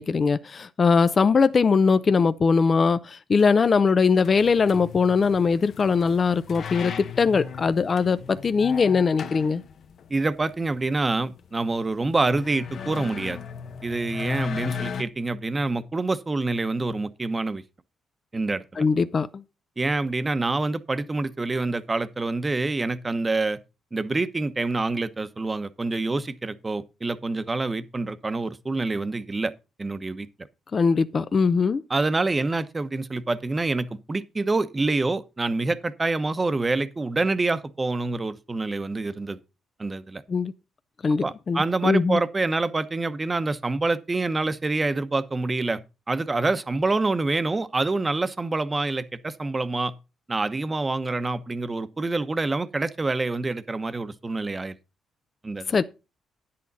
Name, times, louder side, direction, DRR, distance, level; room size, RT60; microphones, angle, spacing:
voice 1, 0.0-9.6 18.8-19.4 30.7-31.8 40.3-40.5 41.0-42.2 55.7-55.8, left 5 dB, 40° left, 0.6 m, -21 dB
sound 1, 4.2-15.0, left 6 dB, 60° left, 1.0 m, -37 dB
voice 2, 10.1-13.4 13.8-17.6 18.3-18.8 19.8-23.6 23.9-29.5 29.8-30.3 31.9-39.4 39.8-40.2 41.2-45.8 46.1-49.9 50.3-54.8 55.4-55.8, right 3 dB, 25° right, 1.0 m, -26 dB
10.0 x 8.6 x 4.1 m
cardioid pair, 90°, 0 cm